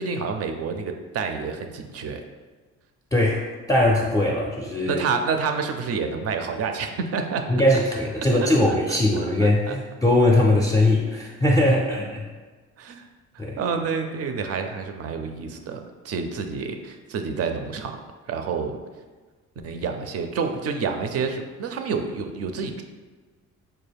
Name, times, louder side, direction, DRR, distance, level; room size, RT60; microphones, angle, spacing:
voice 1, 0.0-2.2 4.9-7.4 8.4-9.0 9.4-9.7 12.8-13.0 13.3-17.9 18.3-18.8 19.6-22.8, right 5 dB, 55° right, 5 dB, 0.5 m, -28 dB
voice 2, 3.1-5.0 7.5-12.2 13.4-13.6, left 1 dB, 10° left, -1 dB, 0.4 m, -21 dB
4.4 x 2.1 x 3.4 m, 1.3 s
cardioid pair, 90°, 30 cm